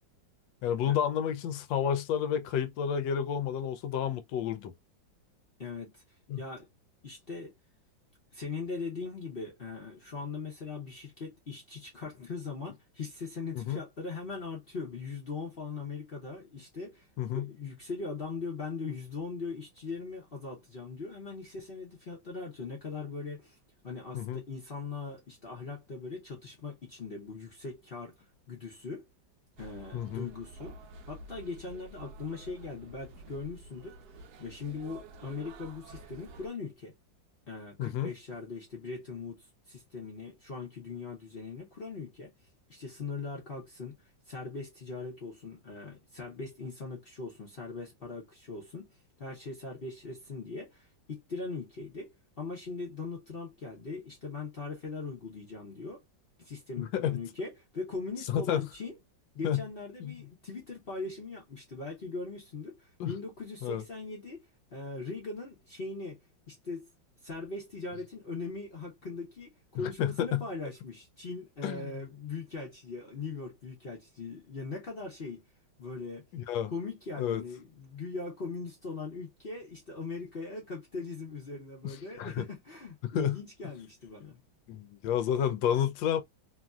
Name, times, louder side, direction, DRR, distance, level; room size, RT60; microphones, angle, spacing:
voice 1, 0.6-4.7 6.3-6.4 13.5-13.8 17.2-17.5 24.1-24.4 29.9-30.3 37.8-38.1 56.8-57.2 58.3-58.6 59.4-59.6 60.0-60.2 63.0-63.1 63.6-63.8 69.7-70.4 71.6-71.9 76.3-76.7 77.2-77.4 81.8-82.4 83.1-83.4 84.7-86.2, left 9 dB, 75° left, 1.2 m, -30 dB
voice 2, 5.6-6.0 6.4-6.7 7.0-7.5 8.3-17.1 17.3-23.6 23.8-28.1 28.5-29.1 29.6-30.8 31.0-34.0 34.4-36.9 37.5-42.3 42.7-44.0 44.3-48.9 49.2-56.0 56.4-58.9 59.3-66.2 66.5-66.9 67.2-75.4 75.8-76.2 76.7-84.4, left 4 dB, 50° left, 0.7 m, -40 dB
down at the tubestation at midnight, 29.6-36.5, right 2 dB, 70° right, 1.0 m, -50 dB
3.1 x 2.6 x 2.3 m
omnidirectional pair, 2.1 m